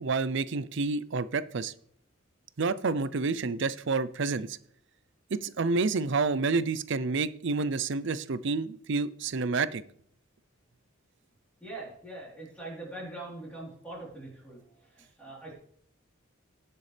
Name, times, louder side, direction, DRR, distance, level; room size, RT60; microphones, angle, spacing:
voice 1, 0.0-1.7 2.6-4.6 5.3-9.8, right 4 dB, 60° right, 16 dB, 0.5 m, -29 dB
voice 2, 11.6-15.5, right 2 dB, 5° left, -6 dB, 3.8 m, -43 dB
18.5 x 6.8 x 3.4 m, 0.62 s
head